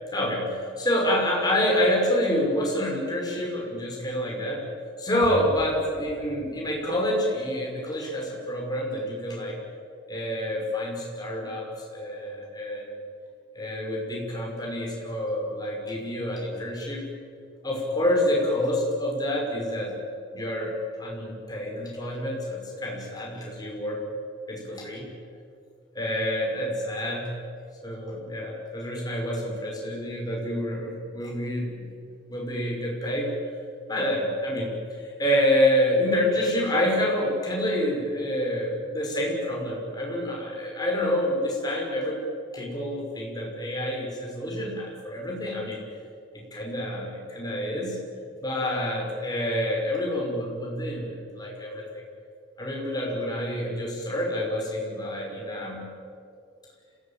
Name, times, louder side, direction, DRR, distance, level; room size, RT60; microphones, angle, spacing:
voice 1, 0.1-4.7 5.0-9.5 10.1-12.9 13.6-17.0 17.6-20.0 20.3-24.0 24.5-25.1 25.9-27.4 27.8-31.9 32.3-33.3 33.9-42.2 42.5-45.8 46.3-48.0 48.4-52.0 52.6-55.9, left 1 dB, 20° left, -2 dB, 5.8 m, -28 dB
26.0 x 18.0 x 8.9 m, 2.4 s
head